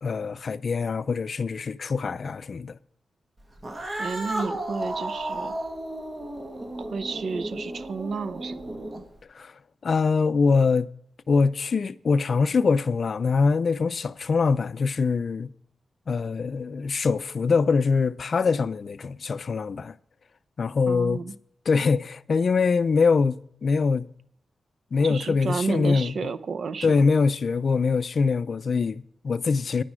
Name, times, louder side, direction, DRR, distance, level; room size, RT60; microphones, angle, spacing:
voice 1, 0.0-2.8 9.3-9.5 9.8-10.9 11.3-15.5 16.1-19.9 20.6-21.2 21.7-24.1 24.9-26.1 26.8-29.8, left 4 dB, 55° left, 0.4 m, -23 dB
Cat, 3.6-9.2, right 1 dB, 35° right, 1.8 m, -33 dB
voice 2, 4.0-5.5 6.8-8.9 20.9-21.3 25.0-27.0, right 4 dB, 70° right, 0.6 m, -32 dB
9.9 x 9.7 x 6.2 m
wide cardioid pair, 105°, 0 cm